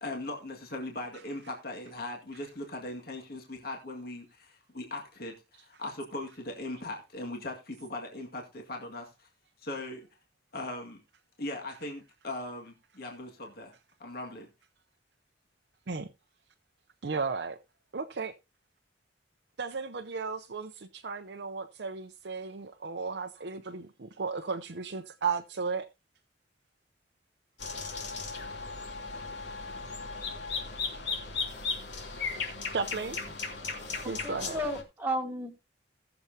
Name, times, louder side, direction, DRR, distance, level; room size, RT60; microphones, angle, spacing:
voice 1, 0.0-9.3 9.6-10.1 10.5-11.0 11.4-13.7 14.0-14.5, left 2 dB, 55° left, 2.0 m, -39 dB
voice 2, 17.0-17.6 17.9-18.3 19.6-25.9 32.7-33.2 34.0-34.6, right 4 dB, 65° right, 0.7 m, -34 dB
sound 1, 27.6-34.8, left 4 dB, 75° left, 3.0 m, -36 dB
voice 3, 34.2-35.7, equal, 10° right, 1.5 m, -33 dB
18.0 x 7.1 x 2.8 m
head